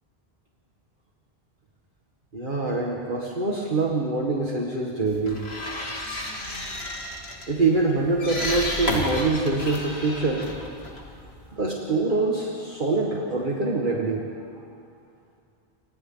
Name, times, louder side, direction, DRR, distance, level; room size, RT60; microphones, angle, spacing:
voice 1, 2.3-5.4 7.5-10.5 10.9-11.0 11.5-14.2, right 3 dB, 55° right, -2 dB, 2.1 m, -25 dB
sound 1, 5.1-11.6, left 1 dB, 80° left, 2.8 m, -32 dB
30.0 x 26.5 x 4.0 m, 2.3 s
omnidirectional pair, 1.0 m